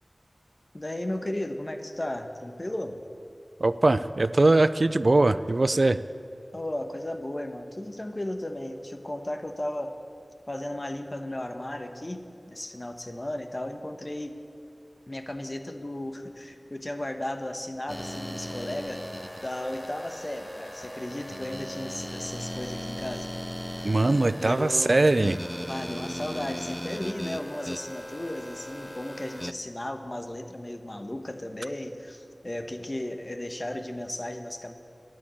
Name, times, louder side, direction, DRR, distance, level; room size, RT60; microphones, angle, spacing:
voice 1, 0.7-3.0 6.5-9.9 10.5-14.4 15.1-19.0 19.4-23.3 24.4-25.0 25.7-34.7, left 1 dB, 35° left, 7 dB, 1.1 m, -35 dB
voice 2, 3.6-6.0 23.8-25.4, right 2 dB, 65° right, 14 dB, 0.4 m, -21 dB
sound 1, 17.9-29.5, equal, 5° left, 0.4 m, -38 dB
13.0 x 9.8 x 8.9 m, 2.6 s
wide cardioid pair, 60°, 0 cm